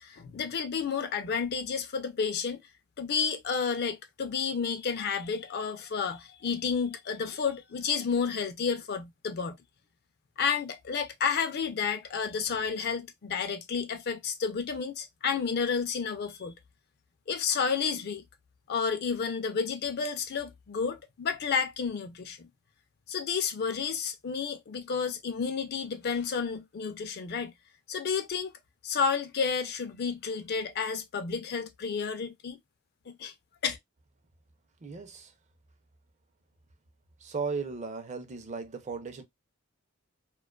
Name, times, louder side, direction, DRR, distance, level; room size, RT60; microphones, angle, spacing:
voice 1, 0.0-2.6 3.0-9.6 10.4-16.5 17.3-18.2 18.7-22.5 23.1-27.5 27.9-28.5 28.8-32.6 33.1-33.3 33.6-33.8, left 6 dB, 50° left, 0.4 m, -31 dB
voice 2, 34.8-35.3 37.2-39.2, right 4 dB, 35° right, 0.5 m, -36 dB
2.4 x 2.2 x 2.3 m
head